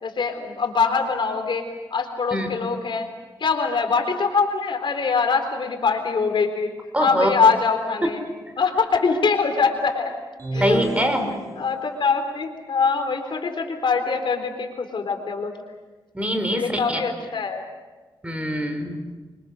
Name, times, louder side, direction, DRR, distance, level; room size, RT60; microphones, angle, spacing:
voice 1, 0.0-3.1 3.4-6.7 7.0-8.2 8.6-10.1 10.5-10.8 11.6-15.5 16.5-17.6, left 5 dB, 65° left, 6 dB, 3.8 m, -23 dB
voice 2, 6.9-7.3 10.6-11.3 16.1-17.0 18.2-19.0, equal, 15° right, 6 dB, 4.9 m, -23 dB
sound 1, 10.4-12.0, right 2 dB, 35° right, 3.3 m, -30 dB
28.5 x 25.0 x 6.8 m, 1.3 s
wide cardioid pair, 95°, 9 cm